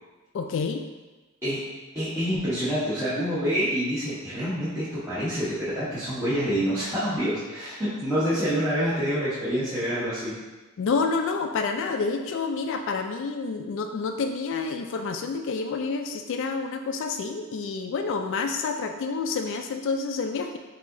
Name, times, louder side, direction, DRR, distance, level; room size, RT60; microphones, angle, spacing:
voice 1, 0.3-0.9 10.8-20.6, left 4 dB, 60° left, 5 dB, 0.3 m, -28 dB
voice 2, 1.9-10.3, equal, 10° right, -14 dB, 1.0 m, -27 dB
6.3 x 2.8 x 2.6 m, 1.2 s
head